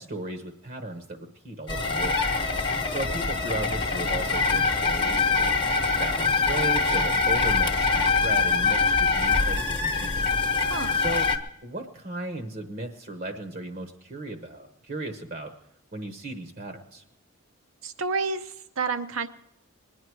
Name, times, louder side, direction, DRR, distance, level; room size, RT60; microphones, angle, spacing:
voice 1, 0.0-2.6 2.9-5.6 5.9-10.2 10.5-10.6 10.9-11.3 11.6-15.5 15.9-17.0, right 2 dB, 40° right, 7 dB, 1.0 m, -36 dB
sound 1, 1.7-11.4, left 4 dB, 20° left, 1.0 m, -24 dB
voice 2, 10.6-11.0 17.8-19.3, right 4 dB, 70° right, 9 dB, 0.8 m, -30 dB
21.5 x 9.3 x 4.7 m, 0.84 s
head